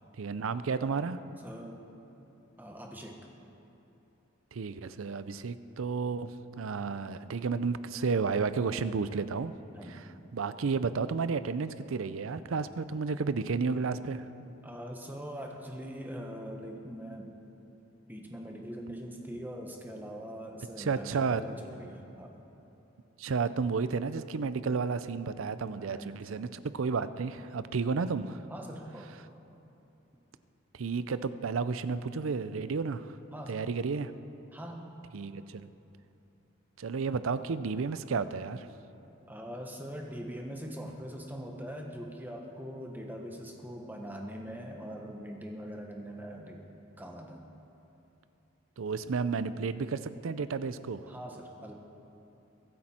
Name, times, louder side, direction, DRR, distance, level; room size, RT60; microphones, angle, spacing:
voice 1, 0.2-1.2 4.5-6.3 6.6-9.5 9.9-10.0 10.3-14.3 20.8-21.4 23.2-28.4 30.7-33.2 33.5-34.1 35.1-35.7 36.8-38.7 48.8-51.1, right 5 dB, 85° right, 13 dB, 0.5 m, -32 dB
voice 2, 1.4-1.8 2.6-3.3 9.7-10.0 14.6-17.3 18.1-22.4 25.8-26.2 28.5-29.1 33.3-33.6 34.5-34.9 39.3-46.6 47.0-47.4 51.1-51.7, equal, 10° right, 1 dB, 1.2 m, -42 dB
23.0 x 10.5 x 4.3 m, 2.9 s
head